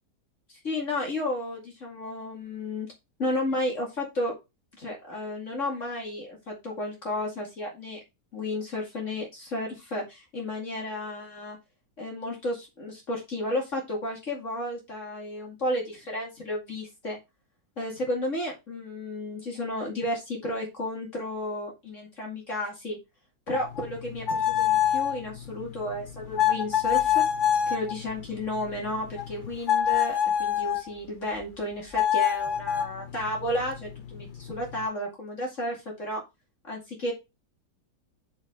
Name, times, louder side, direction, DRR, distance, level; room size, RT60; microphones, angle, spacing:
voice 1, 0.6-2.9 3.2-4.3 4.8-8.0 8.3-11.6 12.0-17.2 17.8-23.0 23.5-27.2 27.7-36.2 36.6-37.1, left 1 dB, 40° left, -1 dB, 2.6 m, -32 dB
sound 1, 23.5-30.9 31.9-34.9, left 10 dB, 60° left, 0.5 m, -27 dB
6.9 x 5.0 x 3.8 m, 0.23 s
omnidirectional pair, 2.0 m